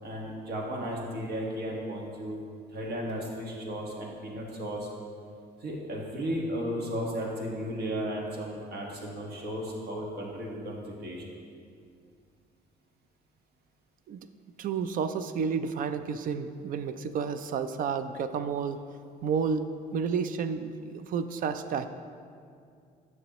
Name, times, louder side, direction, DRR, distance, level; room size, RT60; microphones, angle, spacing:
voice 1, 0.0-2.4 2.7-4.9 5.6-11.2, equal, 70° right, -2 dB, 1.6 m, -34 dB
voice 2, 14.6-18.8 19.2-21.9, right 6 dB, 55° right, 10 dB, 0.4 m, -31 dB
9.8 x 6.5 x 3.0 m, 2.3 s
cardioid pair, 110°, 17 cm